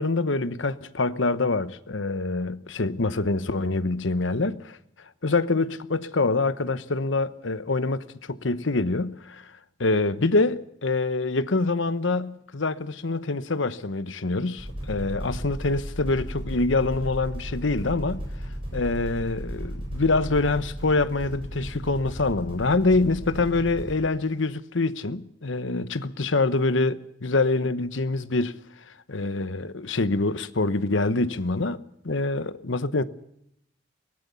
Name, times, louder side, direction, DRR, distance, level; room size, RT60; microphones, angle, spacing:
voice 1, 0.0-4.8 5.2-9.5 9.8-18.3 18.7-28.5 29.1-33.0, left 3 dB, 80° left, 1.0 m, -25 dB
sound 1, 14.6-23.9, equal, 30° right, 7.8 m, -35 dB
23.5 x 17.0 x 6.9 m
head